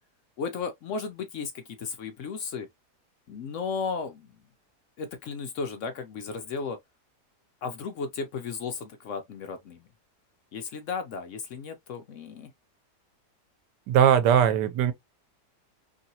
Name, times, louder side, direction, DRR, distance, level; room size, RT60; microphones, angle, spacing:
voice 1, 0.4-2.7 3.3-4.3 5.0-6.8 7.6-9.9 10.5-12.5, left 5 dB, 70° left, 0.7 m, -34 dB
voice 2, 13.9-14.9, right 9 dB, 90° right, 1.2 m, -20 dB
3.0 x 2.7 x 2.7 m
omnidirectional pair, 1.8 m